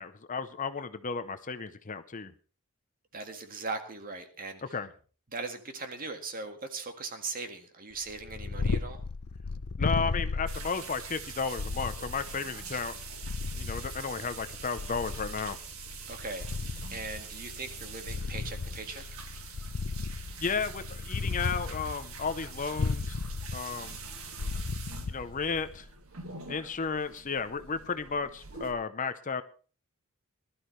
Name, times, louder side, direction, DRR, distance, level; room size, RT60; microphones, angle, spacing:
voice 1, 0.0-2.3 4.7-4.9 9.8-13.0 13.6-15.6 20.4-23.2 23.5-24.0 25.1-25.9 26.5-29.4, left 5 dB, 35° left, 11 dB, 0.8 m, -33 dB
voice 2, 3.1-4.8 5.3-9.0 16.1-19.0, right 3 dB, 40° right, 6 dB, 1.9 m, -39 dB
Purr, 8.1-25.8, left 4 dB, 70° left, 0.7 m, -35 dB
sound 1, 10.5-28.7, right 5 dB, 65° right, 1.9 m, -45 dB
20.0 x 12.5 x 3.3 m, 0.38 s
head